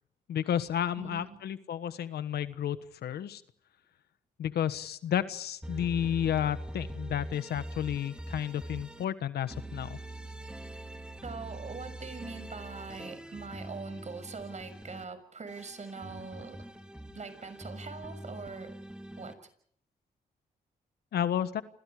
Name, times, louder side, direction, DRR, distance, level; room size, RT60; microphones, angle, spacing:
voice 1, 0.3-2.8 3.0-3.4 4.4-10.0 21.1-21.6, left 10 dB, 80° left, 13 dB, 1.4 m, -31 dB
voice 2, 1.0-1.4 11.2-16.6 17.1-18.8 19.2-19.4, right 4 dB, 45° right, 10 dB, 6.5 m, -42 dB
sound 1, 5.6-9.0 9.5-15.0 15.5-19.3, right 1 dB, 5° right, 2.9 m, -43 dB
29.5 x 27.0 x 5.0 m, 0.63 s
cardioid pair, 65°, 16 cm